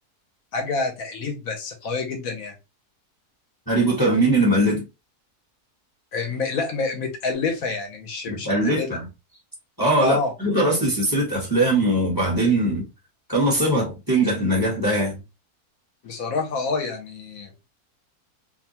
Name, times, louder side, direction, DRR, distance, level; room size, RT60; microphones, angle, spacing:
voice 1, 0.5-2.5 6.1-9.0 10.0-10.3 16.0-17.5, left 4 dB, 65° left, 1.1 m, -27 dB
voice 2, 3.7-4.8 8.3-9.0 9.8-12.8 13.3-15.2, right 1 dB, 15° left, 0.9 m, -21 dB
2.8 x 2.2 x 2.7 m
omnidirectional pair, 1.7 m